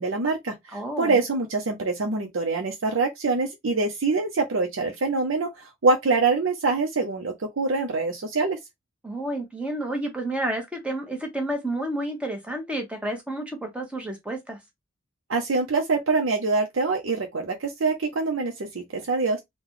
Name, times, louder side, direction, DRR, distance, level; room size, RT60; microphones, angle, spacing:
voice 1, 0.0-8.6 15.3-19.4, right 3 dB, 80° right, 0.7 m, -25 dB
voice 2, 0.7-1.1 9.0-14.6, right 1 dB, 5° right, 0.9 m, -30 dB
3.8 x 2.3 x 3.0 m
head